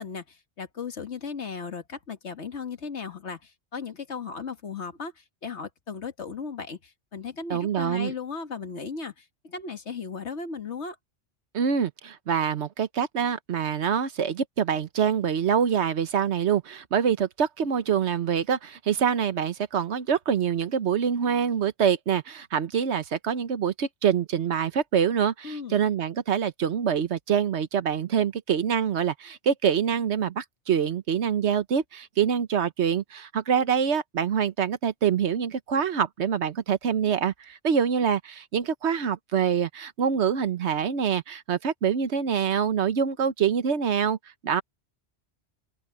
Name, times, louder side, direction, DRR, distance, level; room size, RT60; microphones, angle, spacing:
voice 1, 0.0-11.0 25.4-25.8, left 5 dB, 80° left, 1.9 m, -36 dB
voice 2, 7.5-8.1 11.5-44.2 44.4-44.6, right 7 dB, 80° right, 1.2 m, -25 dB
omnidirectional pair, 1.1 m